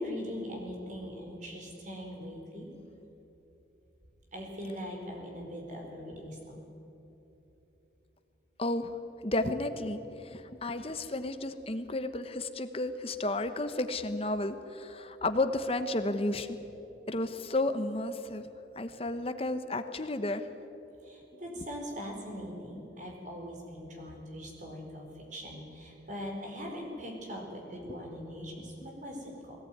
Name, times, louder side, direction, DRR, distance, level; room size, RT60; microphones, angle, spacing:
voice 1, 0.0-2.7 4.3-6.6 21.0-29.6, equal, 40° right, 0 dB, 4.5 m, -41 dB
voice 2, 8.6-8.9 9.2-16.6 17.1-18.4 18.8-20.4, left 2 dB, 30° left, 9 dB, 1.0 m, -32 dB
20.5 x 18.0 x 9.4 m, 3.0 s
head